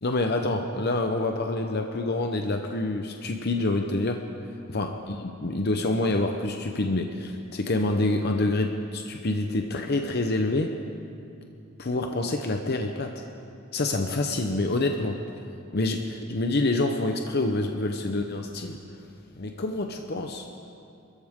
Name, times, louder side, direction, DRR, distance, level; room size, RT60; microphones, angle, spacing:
voice 1, 0.0-10.7 11.8-13.2 13.7-15.2 15.7-19.1 19.4-20.7, left 2 dB, 55° left, 4 dB, 0.8 m, -27 dB
27.5 x 14.0 x 3.7 m, 2.5 s
head